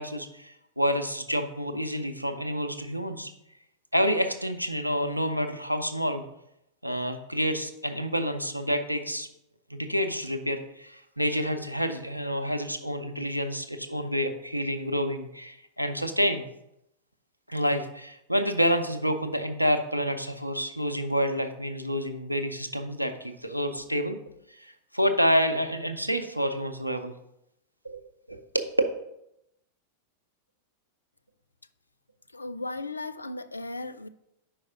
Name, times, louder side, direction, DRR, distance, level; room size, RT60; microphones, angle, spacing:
voice 1, 0.0-3.3 3.9-6.2 6.8-9.3 9.7-16.5 17.5-24.2 24.6-27.1 27.8-28.0 28.3-28.7, equal, 90° right, 8 dB, 0.6 m, -28 dB
voice 2, 32.3-34.1, left 2 dB, 80° left, 12 dB, 0.3 m, -36 dB
5.2 x 4.7 x 5.7 m, 0.81 s
figure-of-eight pair, 90°, 0 cm